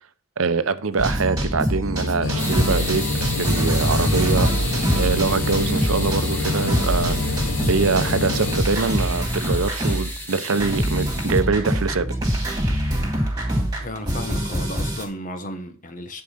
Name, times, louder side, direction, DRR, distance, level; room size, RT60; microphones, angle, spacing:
voice 1, 0.4-4.5 5.0-7.2 7.7-12.1, right 4 dB, 80° right, 0.7 m, -24 dB
sound 1, 1.0-10.2 10.5-15.0, equal, 20° right, 2.9 m, -24 dB
sound 2, 2.2-8.6, left 3 dB, 80° left, 0.9 m, -28 dB
sound 3, 2.4-11.4, left 1 dB, 10° left, 1.3 m, -33 dB
voice 2, 13.8-16.2, left 1 dB, 40° left, 1.2 m, -34 dB
9.8 x 4.9 x 5.7 m
head